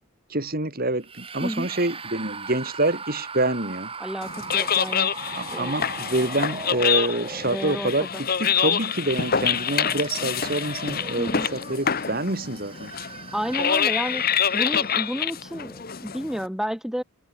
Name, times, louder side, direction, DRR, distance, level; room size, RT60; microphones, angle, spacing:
voice 1, 0.3-3.9 5.3-12.9, right 2 dB, 45° right, 3.8 m, -27 dB
sound 1, 1.0-8.1 8.8-15.3, right 4 dB, 25° right, 6.9 m, -39 dB
voice 2, 4.0-5.7 7.5-7.9 8.6-8.7 11.2-11.5 13.3-17.0, equal, ahead, 1.6 m, -31 dB
sound 2, 4.2-16.5, left 7 dB, 45° left, 1.1 m, -26 dB
head